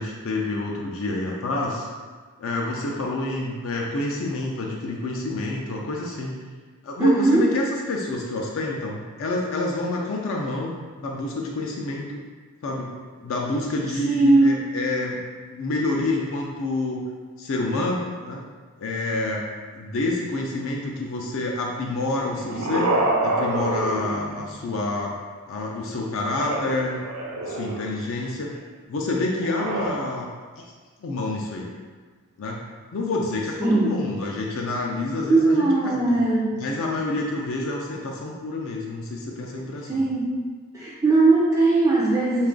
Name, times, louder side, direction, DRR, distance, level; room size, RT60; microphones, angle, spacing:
voice 1, 0.0-1.9 2.4-6.4 6.8-12.2 12.6-15.2 15.5-17.1 17.4-18.4 18.8-19.5 19.7-25.1 25.5-27.0 27.4-28.5 28.9-30.3 30.6-30.7 31.0-31.7 32.4-32.6 32.9-36.2 36.6-40.0, left 2 dB, 60° left, -1 dB, 0.4 m, -28 dB
voice 2, 7.0-7.4 14.1-14.6 33.6-33.9 35.3-36.5 39.9-40.4 40.7-42.5, right 3 dB, 15° right, -7 dB, 0.3 m, -19 dB
sound 1, 22.1-24.8 26.3-28.0 29.4-29.9, right 2 dB, 85° right, 0.6 m, -27 dB
3.2 x 2.4 x 3.7 m, 1.5 s
head